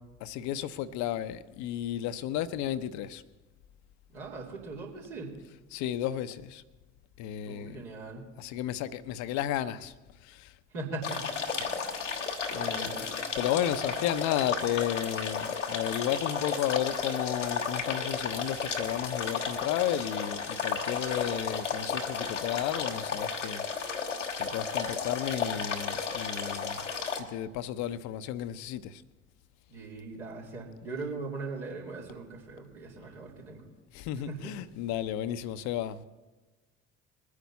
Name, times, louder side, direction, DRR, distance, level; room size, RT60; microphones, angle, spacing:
voice 1, 0.2-3.2 5.7-6.6 7.2-7.8 8.4-9.9 10.2-10.6 11.6-13.0 13.4-23.7 24.4-26.8 27.2-29.0 33.9-36.0, left 11 dB, 50° left, 0.7 m, -33 dB
voice 2, 4.1-5.3 7.5-8.2 10.7-11.3 11.6-11.8 12.6-13.0 29.7-33.6 34.1-34.5, right 3 dB, 70° right, 3.1 m, -40 dB
sound 1, 11.0-27.2, left 5 dB, 85° left, 1.0 m, -33 dB
21.5 x 9.6 x 4.1 m
figure-of-eight pair, 55°, 36 cm